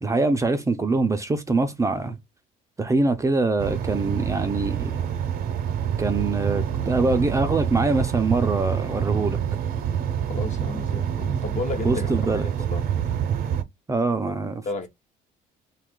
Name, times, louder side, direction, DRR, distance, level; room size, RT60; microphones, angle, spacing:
voice 1, 0.0-2.2 2.8-5.0 6.0-9.4 11.8-12.5 13.9-14.6, right 3 dB, 20° right, 0.4 m, -23 dB
sound 1, 3.6-13.6, right 9 dB, 60° right, 0.6 m, -27 dB
voice 2, 10.3-12.8 14.7-14.9, left 3 dB, 45° left, 0.8 m, -33 dB
2.8 x 2.4 x 3.6 m
cardioid pair, 110°, 17 cm